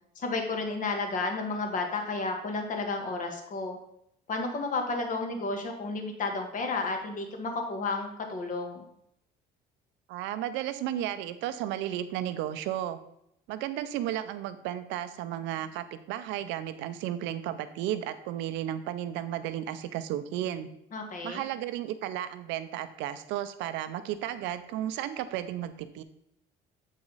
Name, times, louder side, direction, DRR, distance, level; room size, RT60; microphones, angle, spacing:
voice 1, 0.1-3.8 4.3-8.9 20.9-21.4, left 3 dB, 45° left, 3 dB, 1.6 m, -32 dB
voice 2, 10.1-13.0 13.5-20.7 21.2-26.0, right 12 dB, 85° right, 11 dB, 0.6 m, -33 dB
7.4 x 4.9 x 4.1 m, 0.76 s
cardioid pair, 95°, 18 cm